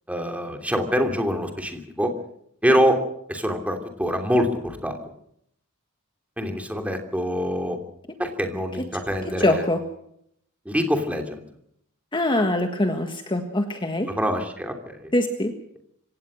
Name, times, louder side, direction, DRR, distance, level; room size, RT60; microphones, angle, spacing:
voice 1, 0.1-2.1 2.6-3.0 3.3-5.0 6.4-7.8 8.2-9.6 10.6-11.4 14.2-14.9, equal, 5° right, 4 dB, 3.0 m, -24 dB
voice 2, 8.9-9.8 12.1-14.1 15.1-15.5, left 1 dB, 20° left, 5 dB, 1.6 m, -24 dB
25.5 x 17.0 x 6.4 m, 0.70 s
head